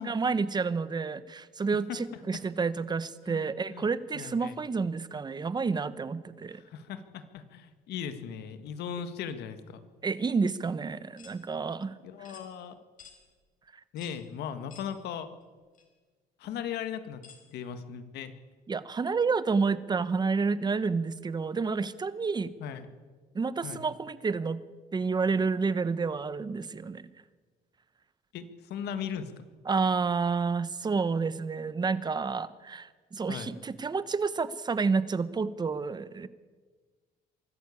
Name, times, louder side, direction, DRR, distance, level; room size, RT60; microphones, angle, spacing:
voice 1, 0.0-6.6 10.0-11.9 18.7-22.6 23.3-24.6 24.9-27.1 29.6-36.3, right 4 dB, 25° right, 15 dB, 1.1 m, -29 dB
voice 2, 3.3-3.9 4.1-4.6 6.6-9.8 12.0-12.8 13.9-15.3 16.4-17.2 17.5-18.3 22.6-22.9 23.6-23.8 28.3-29.5 33.3-33.5, left 8 dB, 75° left, 10 dB, 1.8 m, -38 dB
sound 1, 11.2-11.4 12.2-12.5 13.0-13.2 14.0-14.2 14.7-14.9 15.7-15.8 17.2-17.4, left 6 dB, 50° left, 4.7 m, -52 dB
23.5 x 14.0 x 8.6 m, 1.4 s
cardioid pair, 110°, 17 cm